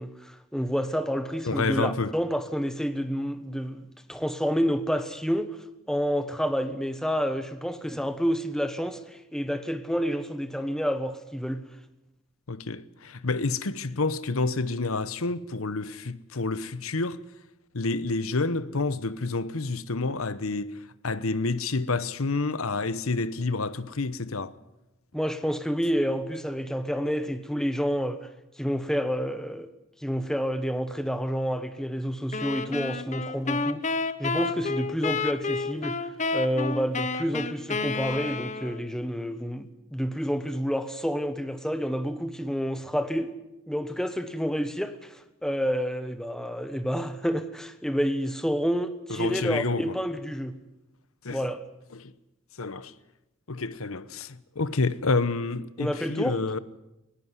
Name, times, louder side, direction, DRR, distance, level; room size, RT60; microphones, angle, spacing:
voice 1, 0.0-3.8 4.1-5.6 5.9-11.6 25.1-28.2 28.6-29.7 30.0-33.8 34.2-36.0 36.3-43.3 43.7-50.6 51.3-51.6 55.8-56.4, equal, 5° left, 1.2 m, -29 dB
voice 2, 1.4-2.1 12.5-17.2 17.7-20.7 21.0-24.5 49.1-49.9 51.2-51.5 51.9-52.1 52.6-52.9 53.5-56.6, left 3 dB, 85° left, 1.0 m, -29 dB
sound 1, 32.3-38.9, left 4 dB, 35° left, 1.0 m, -30 dB
20.0 x 17.0 x 9.8 m
head